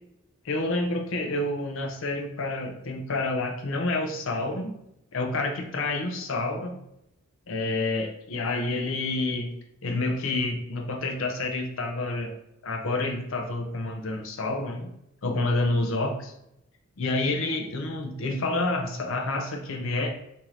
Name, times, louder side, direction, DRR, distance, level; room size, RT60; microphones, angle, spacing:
voice 1, 0.4-4.7 5.1-6.8 7.5-9.6 9.8-12.3 12.6-14.9 15.2-16.3 17.0-20.1, left 2 dB, 70° left, 3 dB, 0.6 m, -28 dB
4.7 x 2.7 x 2.8 m, 0.81 s
head